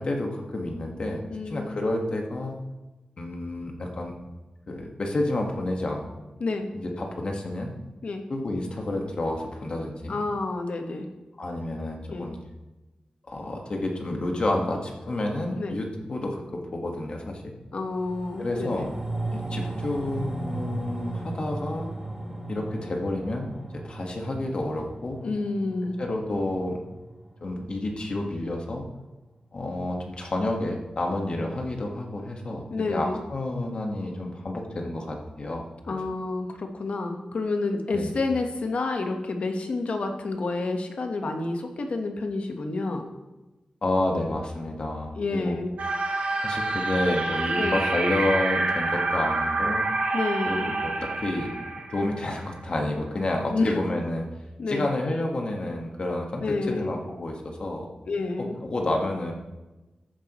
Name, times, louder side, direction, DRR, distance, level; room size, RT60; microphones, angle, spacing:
voice 1, 0.0-2.6 3.2-4.1 4.7-6.0 6.7-7.7 8.3-10.2 11.4-12.4 13.3-17.5 18.4-18.9 19.3-21.9 22.5-23.5 23.8-25.2 26.0-26.8 27.4-28.9 29.5-36.0 37.9-38.1 43.8-45.6 46.4-49.8 50.5-51.5 51.9-54.2 54.7-57.9 58.6-59.3, left 1 dB, 45° left, 1 dB, 1.5 m, -29 dB
voice 2, 1.3-1.7 6.4-6.7 8.0-8.2 10.1-11.1 12.1-12.3 15.6-15.7 17.7-18.9 25.2-26.0 32.7-33.2 35.9-43.1 45.1-45.7 47.6-47.8 50.1-50.7 53.5-53.7 54.6-54.8 56.4-56.9 58.1-58.6, left 3 dB, 60° left, 4 dB, 1.2 m, -29 dB
sound 1, 17.8-28.4 28.7-28.8, right 2 dB, 20° right, 3.8 m, -36 dB
sound 2, 45.8-52.6, right 2 dB, 75° right, 1.5 m, -27 dB
14.5 x 9.2 x 3.1 m, 1.1 s
wide cardioid pair, 170°, 2 cm